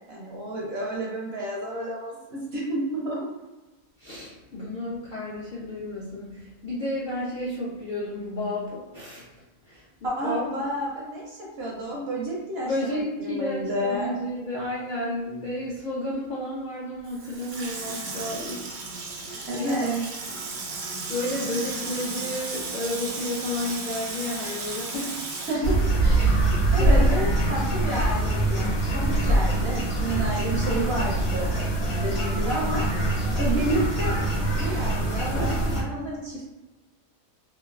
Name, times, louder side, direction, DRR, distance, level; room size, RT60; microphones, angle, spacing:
voice 1, 0.1-3.2 10.0-14.1 19.5-20.0 25.5-32.8 33.4-36.4, right 1 dB, 65° right, -3 dB, 0.7 m, -30 dB
voice 2, 4.0-9.3 9.6-9.9 10.2-10.4 12.6-18.7 19.2-20.0 21.1-25.2 26.8-27.2, left 1 dB, 65° left, -7 dB, 0.5 m, -32 dB
Water tap faucet / Sink (filling or washing), 17.0-26.8 27.1-27.2, right 3 dB, 85° right, 1.1 m, -35 dB
sound 1, 25.6-35.8, right 2 dB, 90° left, 1.3 m, -23 dB
3.0 x 2.2 x 2.3 m, 1.1 s
omnidirectional pair, 1.4 m